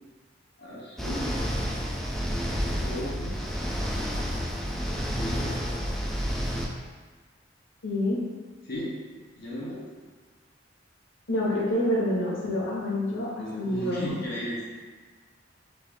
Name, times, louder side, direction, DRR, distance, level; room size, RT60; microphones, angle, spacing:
voice 1, 0.6-1.4 2.6-3.4 5.1-5.6 8.6-9.0 9.4-9.8 13.3-14.7, equal, 60° left, -6 dB, 0.8 m, -36 dB
sound 1, 1.0-6.7, equal, ahead, 0.3 m, -30 dB
voice 2, 7.8-8.2 11.3-14.2, left 1 dB, 90° left, -5 dB, 1.0 m, -27 dB
3.3 x 2.5 x 3.3 m, 1.4 s
head